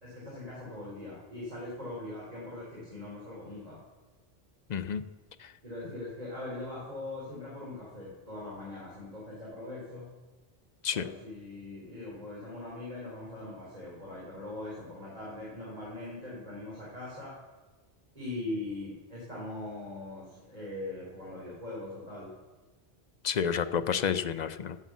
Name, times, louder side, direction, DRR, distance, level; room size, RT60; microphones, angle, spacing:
voice 1, 0.0-3.8 5.6-10.1 10.9-17.4 18.2-22.3, left 2 dB, 35° right, -6 dB, 3.5 m, -41 dB
voice 2, 4.7-5.0 5.4-5.5 10.8-11.1 23.2-24.8, left 7 dB, 55° left, 10 dB, 0.5 m, -30 dB
11.5 x 8.2 x 7.3 m, 1.2 s
omnidirectional pair, 1.1 m